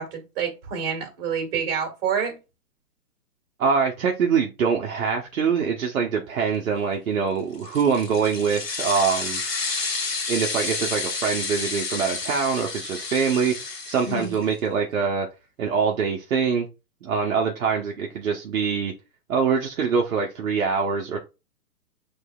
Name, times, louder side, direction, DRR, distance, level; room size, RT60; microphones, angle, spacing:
voice 1, 0.0-2.4 14.0-14.3, right 6 dB, 35° right, 1.9 m, -28 dB
voice 2, 3.6-9.4 10.3-15.3 15.6-16.7 17.0-18.9 19.3-21.2, right 6 dB, 60° right, 1.0 m, -24 dB
sound 1, 7.5-14.5, left 4 dB, 90° left, 1.5 m, -30 dB
6.3 x 3.4 x 2.3 m
hypercardioid pair, 135°, 47 cm